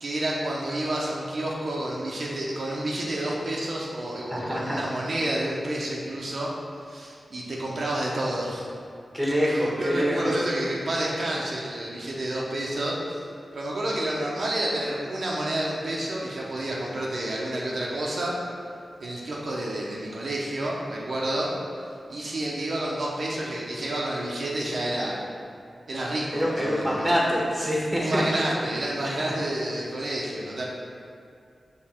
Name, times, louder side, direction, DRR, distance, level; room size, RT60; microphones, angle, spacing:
voice 1, 0.0-6.5 6.8-8.7 9.5-13.2 13.5-18.4 19.0-21.5 22.1-25.2 25.9-27.2 28.0-30.6, right 1 dB, 65° right, -4 dB, 0.9 m, -29 dB
voice 2, 4.3-4.8 9.1-10.3 26.3-28.2, equal, 5° right, -4 dB, 1.4 m, -25 dB
6.7 x 3.3 x 4.4 m, 2.4 s
wide cardioid pair, 90°, 0 cm